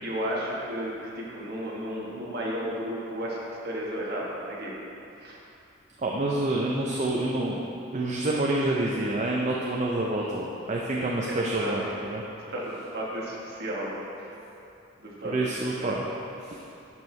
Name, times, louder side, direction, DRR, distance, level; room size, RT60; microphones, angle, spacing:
voice 1, 0.0-3.4 3.6-4.8 5.2-5.4 11.0-12.0 12.5-14.0 15.0-15.5 15.8-16.0, equal, 50° right, -4 dB, 1.3 m, -33 dB
voice 2, 6.0-7.6 7.9-12.2 15.2-16.0 16.4-16.6, right 2 dB, 35° right, -2 dB, 0.5 m, -27 dB
11.5 x 4.5 x 3.2 m, 2.8 s
head